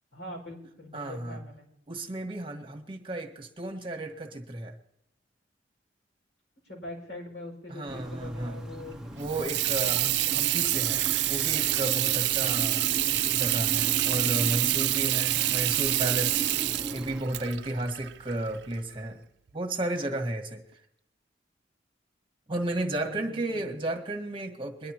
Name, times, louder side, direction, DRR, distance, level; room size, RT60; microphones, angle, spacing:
voice 1, 0.1-1.7 6.6-8.9 9.4-10.5 22.8-23.6, left 1 dB, 75° left, 0 dB, 5.6 m, -43 dB
voice 2, 0.9-1.4 1.9-4.7 7.7-8.6 9.2-12.8 13.3-16.5 16.9-19.2 19.5-20.6 22.5-24.9, right 1 dB, 30° right, 2 dB, 1.7 m, -33 dB
sound 1, 7.9-17.2, right 1 dB, 5° right, 1.1 m, -39 dB
Water tap faucet / Sink (filling or washing), 9.2-18.8, right 16 dB, 65° right, 0.4 m, -27 dB
22.5 x 11.5 x 3.0 m, 0.76 s
head